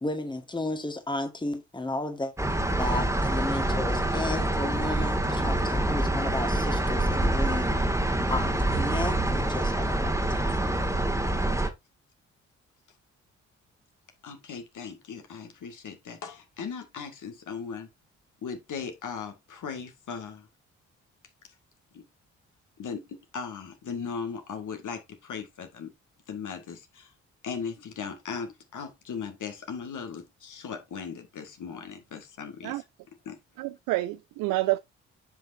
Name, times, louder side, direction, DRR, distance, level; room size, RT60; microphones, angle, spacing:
voice 1, 0.0-2.3 2.8-7.7 8.3-10.5, left 2 dB, 15° left, 1.5 m, -33 dB
sound 1, 2.4-11.7, right 1 dB, 10° right, 1.9 m, -26 dB
voice 2, 14.2-17.9 18.4-20.5 21.9-22.0 22.8-25.9 26.3-27.1 27.4-32.8 33.3-33.4, left 6 dB, 55° left, 1.9 m, -38 dB
voice 3, 33.6-34.8, right 18 dB, 70° right, 0.5 m, -28 dB
9.7 x 5.5 x 2.6 m
hypercardioid pair, 40°, 36 cm